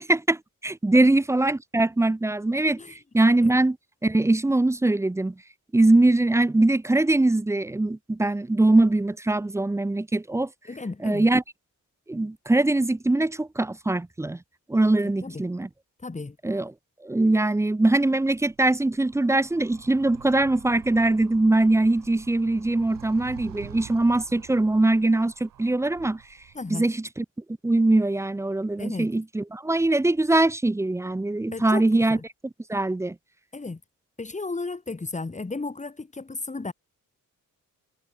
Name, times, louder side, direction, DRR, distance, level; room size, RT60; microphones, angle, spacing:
voice 1, 0.0-3.8 4.0-5.4 5.7-10.5 11.0-11.4 12.1-14.4 14.7-15.7 16.4-16.7 17.0-26.2 26.7-27.2 27.6-32.2 32.7-33.2, right 2 dB, 10° right, 0.4 m, -22 dB
voice 2, 10.6-11.3 15.2-15.4 16.0-16.4 26.5-26.9 28.8-29.1 31.5-32.2 33.5-33.8 34.2-36.7, left 3 dB, 20° left, 1.7 m, -34 dB
Animal, 18.2-26.8, right 12 dB, 85° right, 2.2 m, -48 dB
cardioid pair, 70°, 33 cm